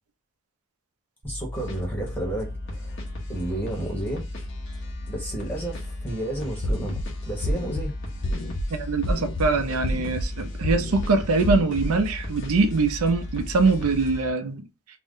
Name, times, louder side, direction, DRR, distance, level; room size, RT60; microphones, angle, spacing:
voice 1, 1.2-3.0 3.3-4.2 5.1-7.0 7.3-7.9 9.5-9.6, right 1 dB, 10° left, 0.9 m, -31 dB
sound 1, 1.2-14.2, left 1 dB, 30° right, 0.6 m, -36 dB
sound 2, 1.5-14.3, left 2 dB, 50° left, 0.8 m, -40 dB
sound 3, 6.6-7.0 7.4-7.8 8.2-8.6 9.0-9.5 9.8-10.3 10.6-11.1 11.4-11.9, left 1 dB, 70° left, 0.4 m, -28 dB
voice 2, 8.7-14.7, right 3 dB, 80° right, 0.5 m, -23 dB
2.5 x 2.1 x 3.6 m
head